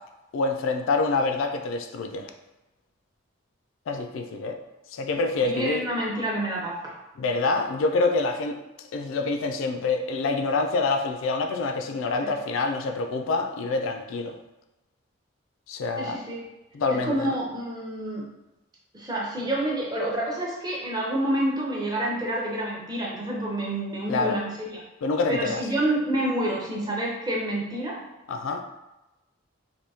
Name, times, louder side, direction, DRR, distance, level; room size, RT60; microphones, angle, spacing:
voice 1, 0.3-2.3 3.9-4.6 4.9-5.9 7.2-8.6 8.9-14.4 15.7-16.2 16.7-17.4 24.1-24.4 25.0-25.6 28.3-28.6, left 3 dB, 70° left, 5 dB, 0.3 m, -26 dB
voice 2, 5.4-7.0 12.2-12.4 16.0-16.5 16.9-18.3 18.9-24.8 25.3-28.0, right 1 dB, 20° right, -3 dB, 0.6 m, -28 dB
3.4 x 2.6 x 2.7 m, 0.99 s
head